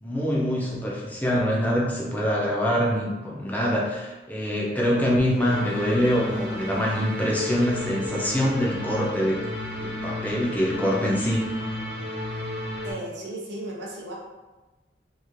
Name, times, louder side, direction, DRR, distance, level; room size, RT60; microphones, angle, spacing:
voice 1, 0.0-9.4 9.8-11.4, equal, 10° left, -4 dB, 0.4 m, -24 dB
sound 1, 5.4-12.9, left 1 dB, 90° left, 1.1 m, -33 dB
voice 2, 12.8-14.1, right 1 dB, 75° right, -3 dB, 0.7 m, -35 dB
3.1 x 2.5 x 2.5 m, 1.1 s
head